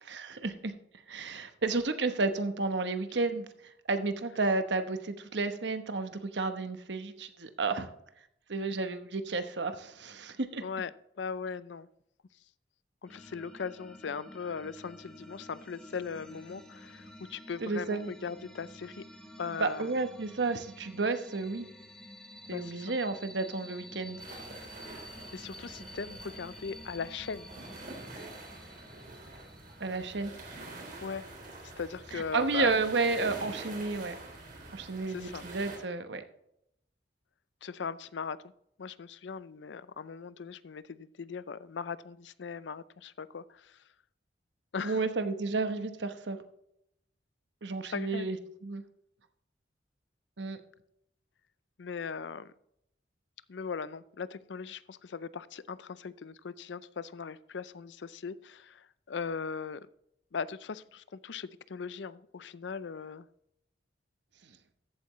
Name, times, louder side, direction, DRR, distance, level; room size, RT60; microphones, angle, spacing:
voice 1, 0.1-0.7 1.1-3.5 3.9-7.9 8.5-10.6 17.6-18.1 19.6-21.7 22.5-24.2 29.8-30.3 32.1-34.2 34.7-36.2 44.8-46.4 47.6-48.4 48.6-48.8 50.4-50.6, right 3 dB, 75° right, 9 dB, 1.0 m, -31 dB
voice 2, 10.6-10.9 11.2-11.9 13.0-19.0 19.4-19.9 22.5-22.9 25.0-27.5 31.0-31.2 31.8-32.7 35.1-35.5 37.6-38.4 38.8-43.8 44.7-45.0 47.8-48.3 51.8-52.5 53.5-59.9 60.3-63.3, left 5 dB, 80° left, 17 dB, 0.5 m, -39 dB
sound 1, 13.1-30.3, equal, 5° left, 1.7 m, -50 dB
sound 2, 24.2-35.8, right 2 dB, 50° right, 3.6 m, -46 dB
14.0 x 8.4 x 3.1 m, 0.76 s
head